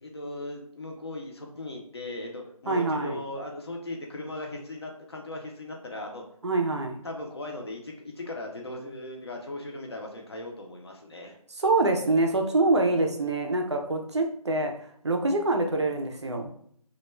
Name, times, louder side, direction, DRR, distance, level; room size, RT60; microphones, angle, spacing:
voice 1, 0.0-6.2 7.0-11.3, left 2 dB, 45° left, 1 dB, 0.5 m, -38 dB
voice 2, 2.7-3.2 6.4-7.0 11.6-14.8 15.0-16.5, right 2 dB, 50° right, 3 dB, 0.4 m, -25 dB
2.2 x 2.1 x 3.0 m, 0.64 s
figure-of-eight pair, 170°, 19 cm